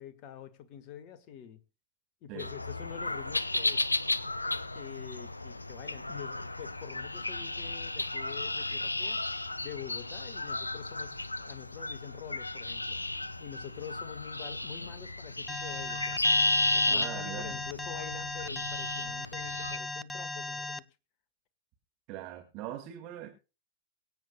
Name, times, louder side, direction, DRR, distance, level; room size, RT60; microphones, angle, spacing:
voice 1, 0.0-1.6 2.2-3.8 4.7-9.2 9.6-13.0 13.4-16.2 16.7-20.9, left 9 dB, 45° left, 1.4 m, -46 dB
sound 1, 2.4-19.8, left 2 dB, 85° left, 0.5 m, -33 dB
Alarm, 15.5-20.8, left 3 dB, 10° left, 0.5 m, -37 dB
voice 2, 16.9-17.5 22.1-23.3, right 12 dB, 40° right, 1.9 m, -41 dB
23.5 x 8.7 x 2.2 m
figure-of-eight pair, 90°, 0 cm